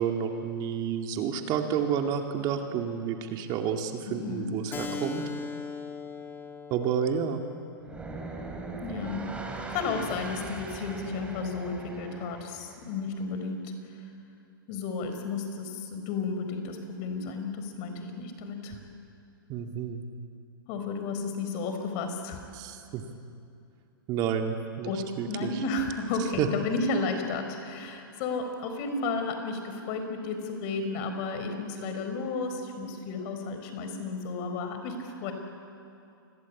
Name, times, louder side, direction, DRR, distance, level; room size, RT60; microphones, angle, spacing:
voice 1, 0.0-5.2 6.7-7.4 19.5-20.0 22.5-23.0 24.1-24.9 25.2-25.5 26.4-26.5, right 8 dB, 35° right, 4 dB, 2.2 m, -30 dB
voice 2, 4.1-4.5 8.8-9.3 9.7-14.0 14.7-18.8 20.7-22.4 24.8-35.3, left 4 dB, 40° left, 6 dB, 4.5 m, -33 dB
Keyboard (musical), 4.7-9.8, left 4 dB, 15° left, 2.4 m, -41 dB
sound 1, 7.8-12.9, right 3 dB, 10° right, 3.1 m, -40 dB
28.0 x 22.0 x 8.5 m, 2.6 s
hypercardioid pair, 130°, 12 cm